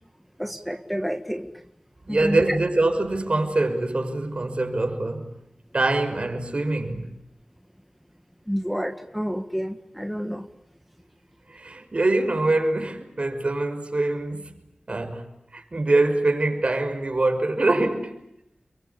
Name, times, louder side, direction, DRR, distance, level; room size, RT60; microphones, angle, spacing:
voice 1, 0.4-1.6 2.1-2.6 8.5-10.5, equal, ahead, 1.8 m, -29 dB
voice 2, 2.1-5.3 5.7-7.1 11.5-14.5 14.9-18.2, right 2 dB, 50° right, 6.0 m, -24 dB
30.0 x 23.0 x 8.5 m
wide cardioid pair, 55°, 2 cm